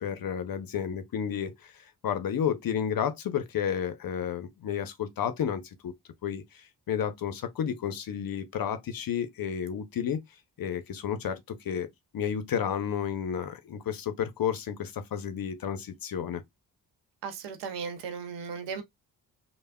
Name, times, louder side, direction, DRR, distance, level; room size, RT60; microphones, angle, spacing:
voice 1, 0.0-5.9 6.2-10.2 10.6-11.9 12.1-16.4, left 8 dB, 55° left, 0.6 m, -31 dB
voice 2, 17.2-18.8, right 6 dB, 85° right, 0.6 m, -36 dB
3.3 x 2.1 x 2.2 m
supercardioid pair, 45°, 41 cm